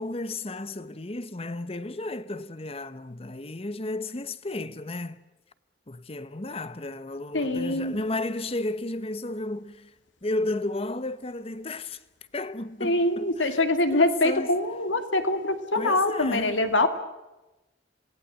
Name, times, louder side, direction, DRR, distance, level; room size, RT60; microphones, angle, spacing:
voice 1, 0.0-5.2 5.9-9.9 10.2-12.0 12.3-13.6 13.9-14.5 15.8-16.6, left 2 dB, 30° left, 1.0 m, -33 dB
voice 2, 7.3-8.0 12.8-16.9, left 2 dB, 85° left, 2.6 m, -24 dB
27.0 x 19.0 x 7.9 m
head